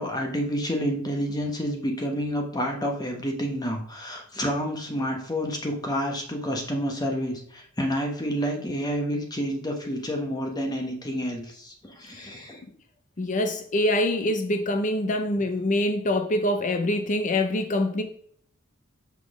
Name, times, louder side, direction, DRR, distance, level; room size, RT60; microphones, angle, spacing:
voice 1, 0.0-12.6, equal, 20° left, 1.0 m, -29 dB
voice 2, 13.2-18.0, left 1 dB, 35° left, 0.6 m, -25 dB
5.7 x 4.1 x 5.8 m
head